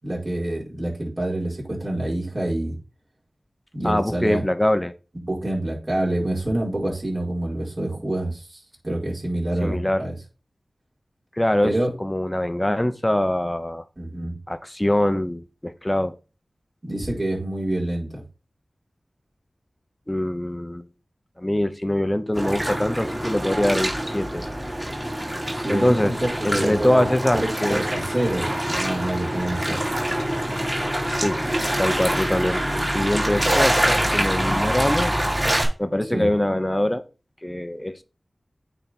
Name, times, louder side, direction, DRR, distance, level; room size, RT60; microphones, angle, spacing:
voice 1, 0.0-2.8 3.7-4.4 5.2-10.2 11.6-11.9 14.0-14.4 16.8-18.2 25.5-29.8 36.1-36.3, right 1 dB, 40° right, 4.9 m, -27 dB
voice 2, 3.8-4.9 9.6-10.0 11.4-13.8 14.5-16.2 20.1-20.9 21.4-24.4 25.7-26.2 26.4-27.8 31.1-31.4 31.8-32.6 32.9-35.2 35.8-37.1 37.4-38.0, left 1 dB, 15° left, 0.9 m, -23 dB
sound 1, 22.3-35.6, right 1 dB, 20° right, 3.2 m, -25 dB
9.0 x 4.2 x 4.3 m
cardioid pair, 45°, 0 cm